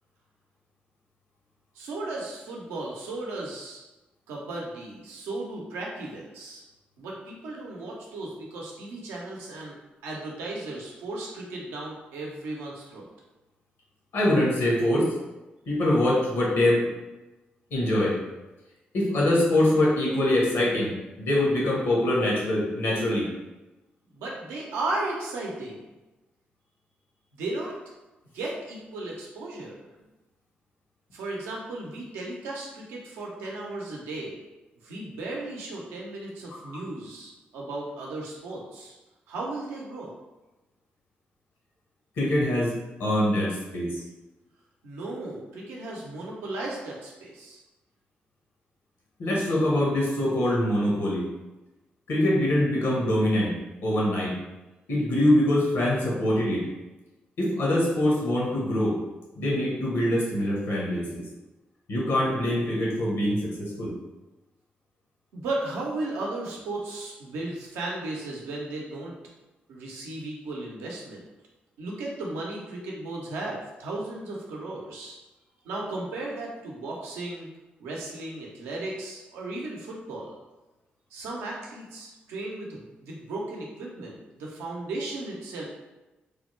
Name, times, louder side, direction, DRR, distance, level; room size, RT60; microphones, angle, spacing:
voice 1, 1.7-3.8 4.3-6.6 7.0-13.1 24.1-25.9 27.3-27.8 28.3-29.7 31.1-34.4 34.8-38.9 39.3-40.1 44.8-47.6 65.3-69.1 69.7-71.3 71.8-75.2 75.6-77.5 77.8-80.3 81.1-85.6, right 2 dB, 90° right, -3 dB, 0.6 m, -35 dB
voice 2, 14.1-15.1 15.7-16.9 17.7-18.2 18.9-20.9 21.2-23.3 36.7-36.8 42.2-44.0 49.2-51.2 52.1-53.5 53.8-54.3 54.9-56.7 57.4-59.0 59.4-61.2 61.9-63.9, left 1 dB, 75° left, -3 dB, 1.0 m, -24 dB
3.4 x 2.1 x 3.1 m, 1.1 s
supercardioid pair, 45°, 4 cm